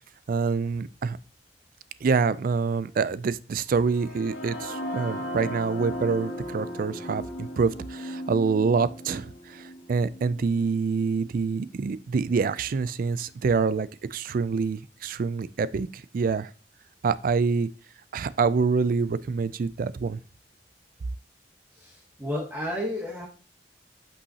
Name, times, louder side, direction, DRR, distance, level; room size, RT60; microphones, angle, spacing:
voice 1, 0.3-1.2 2.0-16.5 17.0-17.7 18.1-20.2, right 5 dB, 55° right, 0.4 m, -26 dB
sound 1, 3.8-11.7, equal, 55° left, 2.0 m, -37 dB
voice 2, 21.7-23.3, left 1 dB, 10° right, 1.2 m, -32 dB
8.4 x 5.4 x 2.8 m
head